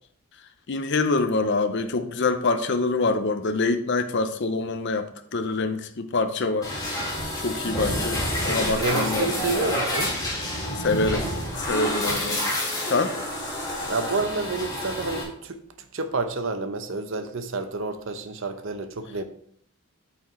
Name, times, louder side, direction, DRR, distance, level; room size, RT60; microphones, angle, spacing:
voice 1, 0.7-6.7 7.4-9.3 10.8-11.2 11.6-12.4 12.9-13.1, left 3 dB, 50° left, 0.6 m, -25 dB
sound 1, 6.6-15.2, left 1 dB, 15° left, 2.1 m, -28 dB
voice 2, 8.7-10.1 13.9-15.6 15.9-19.2, right 3 dB, 60° right, 0.7 m, -29 dB
8.6 x 5.9 x 3.1 m
head